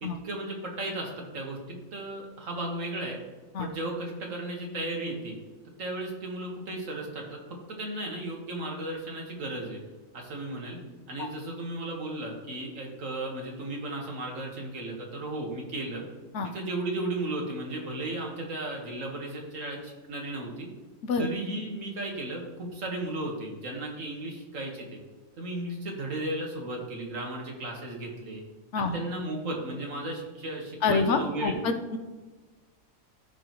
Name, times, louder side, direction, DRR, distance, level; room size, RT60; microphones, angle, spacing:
voice 1, 0.0-3.2 3.6-5.4 5.8-9.8 10.1-10.8 11.1-16.0 16.5-20.7 21.2-25.0 25.4-28.4 28.8-31.6, right 1 dB, 70° right, 0 dB, 1.9 m, -35 dB
voice 2, 30.8-32.0, left 4 dB, 65° left, 7 dB, 0.9 m, -27 dB
14.5 x 5.0 x 3.1 m, 1.3 s
omnidirectional pair, 1.4 m